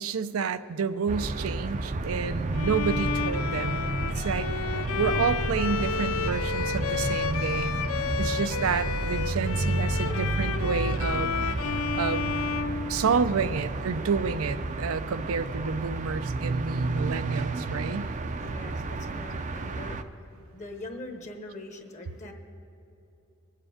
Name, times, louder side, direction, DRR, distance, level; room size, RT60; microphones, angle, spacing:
voice 1, 0.0-4.5 5.0-11.6 12.0-12.4 12.9-18.1, right 5 dB, 85° right, 12 dB, 0.5 m, -30 dB
sound 1, 1.1-20.0, right 2 dB, 35° right, 0.5 m, -31 dB
Bowed string instrument, 2.5-13.5, left 6 dB, 80° left, 0.5 m, -32 dB
voice 2, 18.4-20.0 20.5-22.3, left 2 dB, 35° left, 4 dB, 1.0 m, -42 dB
21.5 x 7.5 x 5.0 m, 2.8 s
head